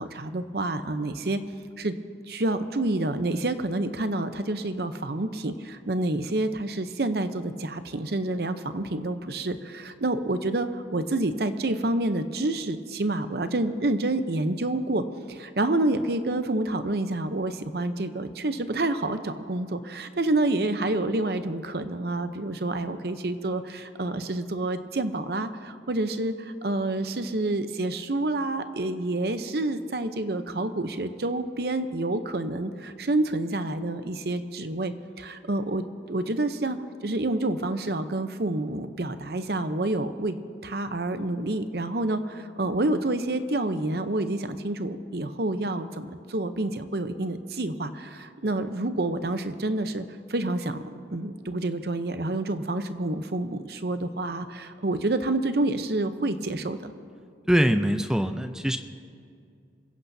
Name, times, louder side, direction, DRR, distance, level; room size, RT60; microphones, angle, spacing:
voice 1, 0.0-1.4 1.8-1.9 2.3-36.8 37.0-40.4 40.6-50.0 50.3-50.8 51.1-56.9, right 2 dB, 60° right, 9 dB, 0.8 m, -28 dB
voice 2, 57.5-58.8, equal, 5° right, 7 dB, 0.5 m, -23 dB
26.0 x 16.0 x 2.8 m, 2.4 s
head